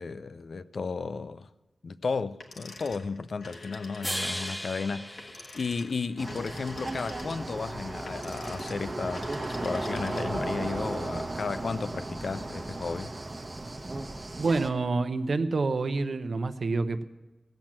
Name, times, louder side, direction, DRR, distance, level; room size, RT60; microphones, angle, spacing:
voice 1, 0.0-1.5 1.8-13.1, left 4 dB, 65° left, 0.4 m, -34 dB
sound 1, 2.4-10.5, left 3 dB, 80° left, 1.4 m, -46 dB
sound 2, 4.0-6.4, equal, 10° left, 0.7 m, -37 dB
sound 3, 6.2-14.7, right 2 dB, 30° right, 1.0 m, -35 dB
voice 2, 14.4-17.0, right 3 dB, 65° right, 0.7 m, -27 dB
16.0 x 7.5 x 7.3 m
wide cardioid pair, 105°, 0 cm